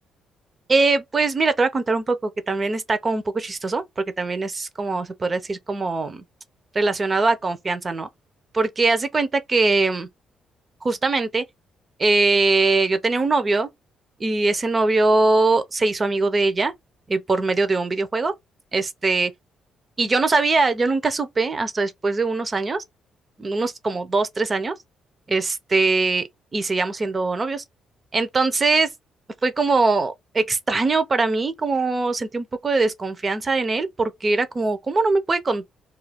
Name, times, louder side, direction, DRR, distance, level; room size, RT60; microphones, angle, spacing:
voice 1, 0.7-6.2 6.7-8.1 8.5-10.1 10.8-11.4 12.0-13.7 14.2-16.7 17.1-18.3 18.7-19.3 20.0-22.8 23.4-24.7 25.3-27.6 28.1-28.9 29.4-35.7, right 3 dB, 30° right, 0.6 m, -22 dB
2.4 x 2.3 x 3.5 m
cardioid pair, 90°, 0 cm